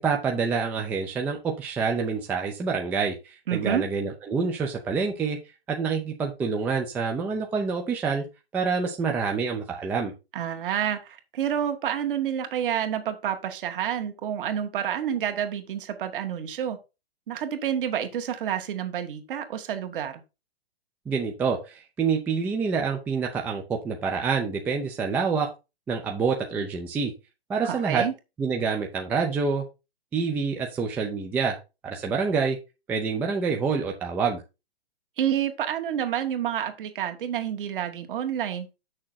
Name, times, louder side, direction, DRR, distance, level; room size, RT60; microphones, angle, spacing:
voice 1, 0.0-5.4 5.7-8.2 8.5-10.1 21.1-25.5 25.9-27.1 27.5-28.0 28.4-29.6 30.1-31.6 31.8-32.6 32.9-34.4, right 5 dB, 5° right, 2 dB, 0.4 m, -27 dB
voice 2, 3.5-3.8 10.3-16.8 17.3-20.2 27.6-28.1 35.2-38.7, right 9 dB, 55° right, 6 dB, 1.8 m, -29 dB
7.4 x 6.4 x 4.1 m, 0.27 s
hypercardioid pair, 150°, 32 cm